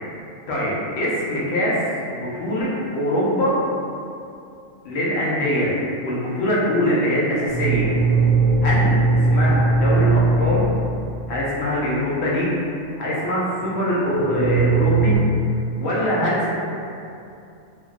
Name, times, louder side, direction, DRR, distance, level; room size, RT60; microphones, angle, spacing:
voice 1, 0.5-1.8 2.1-2.7 2.9-3.6 4.8-5.7 6.0-7.9 8.6-10.7 11.3-12.5 13.0-15.2 15.8-16.5, equal, 60° left, -6 dB, 0.9 m, -22 dB
sound 1, 7.5-11.4 13.6-13.7 14.1-15.2, right 3 dB, 60° right, 0.9 m, -19 dB
3.2 x 2.3 x 2.4 m, 2.6 s
omnidirectional pair, 1.4 m